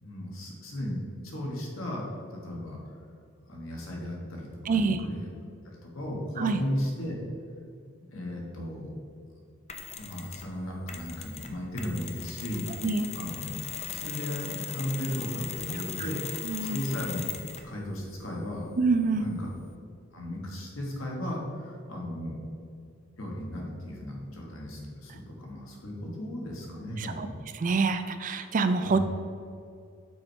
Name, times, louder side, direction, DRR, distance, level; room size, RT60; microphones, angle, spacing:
voice 1, 0.0-2.8 3.5-5.2 5.6-7.2 8.1-8.9 10.0-12.7 13.1-13.5 13.8-17.3 17.6-18.7 19.1-19.5 20.1-22.4 23.2-27.3 28.8-29.0, equal, 75° left, -2 dB, 1.4 m, -35 dB
voice 2, 4.6-5.1 6.4-6.6 12.8-13.1 16.0-16.1 16.4-16.8 18.8-19.3 27.0-27.3 27.5-29.0, right 4 dB, 40° right, 10 dB, 0.4 m, -26 dB
Mechanisms, 9.7-10.5 10.9-17.7, left 7 dB, 30° left, 0.5 m, -39 dB
6.3 x 4.4 x 4.5 m, 2.3 s
head